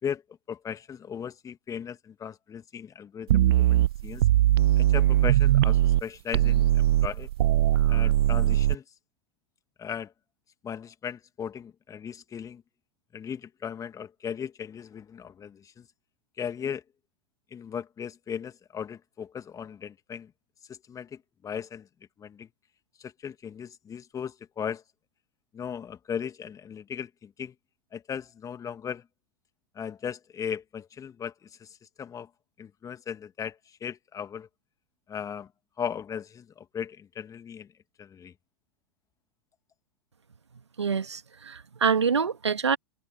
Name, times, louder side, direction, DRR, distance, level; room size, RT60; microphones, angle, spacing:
voice 1, 0.5-4.2 4.8-7.3 7.9-8.8 9.8-10.1 10.6-12.6 13.1-15.9 16.4-16.8 17.5-20.3 20.7-21.9 22.2-22.5 23.0-24.8 25.5-27.5 27.9-29.0 29.8-32.3 32.6-34.5 35.1-35.5 35.8-37.7 38.0-38.3, left 7 dB, 25° left, 2.1 m, -37 dB
sound 1, 3.3-6.0 6.3-8.8, right 14 dB, 65° right, 0.4 m, -21 dB
voice 2, 40.8-41.2 41.5-42.8, right 6 dB, 85° right, 2.3 m, -25 dB
figure-of-eight pair, 95°, 14 cm